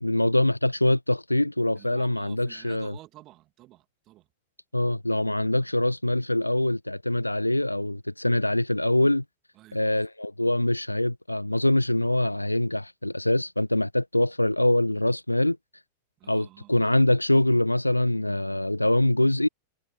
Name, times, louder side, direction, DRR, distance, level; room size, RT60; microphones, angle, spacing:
voice 1, 0.0-2.9 4.7-9.2 9.7-15.6 16.3-19.5, left 1 dB, 85° left, 0.3 m, -24 dB
voice 2, 1.8-4.3 9.5-10.0 16.2-17.0, right 16 dB, 35° right, 2.6 m, -50 dB
figure-of-eight pair, 90°, 0 cm